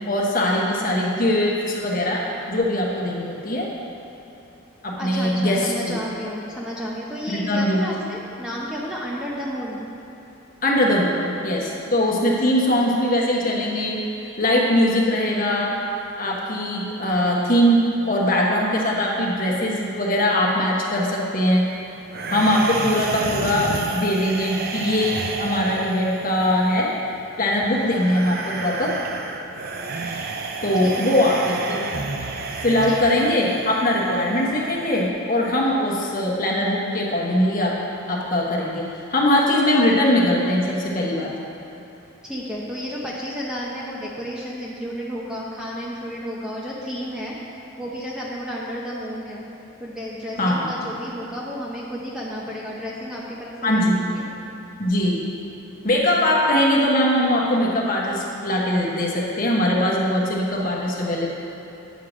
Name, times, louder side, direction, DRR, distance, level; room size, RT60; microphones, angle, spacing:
voice 1, 0.1-2.2 2.5-3.7 4.8-6.0 7.3-7.8 10.6-14.0 14.4-15.7 16.2-21.7 22.3-26.9 27.4-28.9 30.6-31.8 32.2-32.3 32.6-37.7 38.1-38.8 39.1-41.3 50.4-50.7 53.6-54.0 54.8-55.2 55.8-61.3, left 1 dB, 40° left, -2 dB, 1.1 m, -21 dB
voice 2, 5.0-9.8 30.8-31.2 32.8-33.3 42.2-47.4 47.8-49.4 49.8-54.2, equal, 5° right, -5 dB, 0.8 m, -32 dB
sound 1, 22.1-35.1, right 3 dB, 45° right, 0.5 m, -31 dB
9.2 x 4.7 x 6.1 m, 3.0 s
head